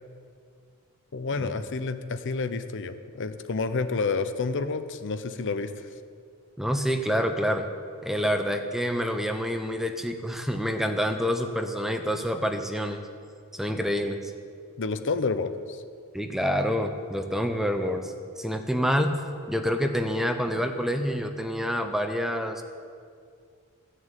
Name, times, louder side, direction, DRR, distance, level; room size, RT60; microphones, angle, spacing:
voice 1, 1.1-5.9 14.8-15.8, left 4 dB, 55° left, 10 dB, 0.7 m, -29 dB
voice 2, 6.6-7.7 8.0-13.0 13.5-14.3 16.1-19.2 19.5-22.6, equal, ahead, 6 dB, 0.7 m, -27 dB
15.0 x 6.6 x 9.0 m, 2.2 s
head